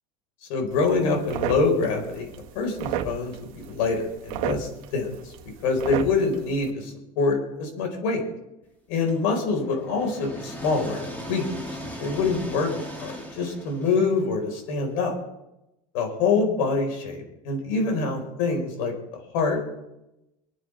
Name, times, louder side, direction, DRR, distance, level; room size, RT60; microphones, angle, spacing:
voice 1, 0.5-2.3 2.5-5.3 5.6-8.2 8.9-11.4 11.7-12.7 13.0-15.1 15.9-19.7, left 4 dB, 70° left, 3 dB, 4.7 m, -25 dB
sound 1, 0.7-6.7, right 10 dB, 70° right, 1.7 m, -34 dB
sound 2, 9.1-15.0, equal, 10° left, 2.3 m, -39 dB
28.5 x 9.6 x 3.5 m, 0.91 s
cardioid pair, 165°, 18 cm